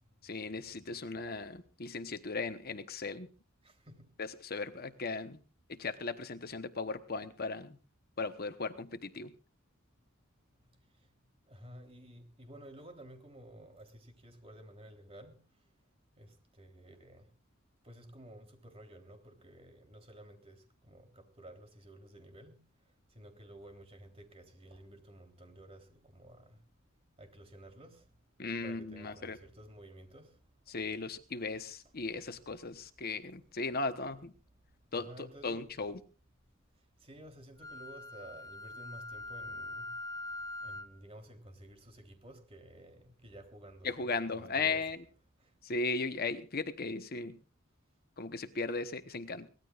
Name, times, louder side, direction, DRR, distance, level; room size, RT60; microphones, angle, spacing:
voice 1, 0.2-3.3 4.2-5.4 5.7-7.8 8.2-9.3 28.4-29.4 30.7-34.3 34.9-36.0 43.8-45.0 45.6-47.4 48.2-49.5, left 3 dB, 45° left, 1.0 m, -37 dB
voice 2, 3.6-4.1 10.9-11.1 11.5-15.4 16.2-17.3 17.8-22.7 23.1-26.6 27.2-28.1 28.6-30.4 35.0-35.7 37.0-39.9 40.2-44.8 45.4-45.5, right 1 dB, 30° right, 3.6 m, -53 dB
Wind instrument woodwind instrument, 37.6-41.0, left 2 dB, 20° left, 1.4 m, -43 dB
23.5 x 18.0 x 2.5 m
head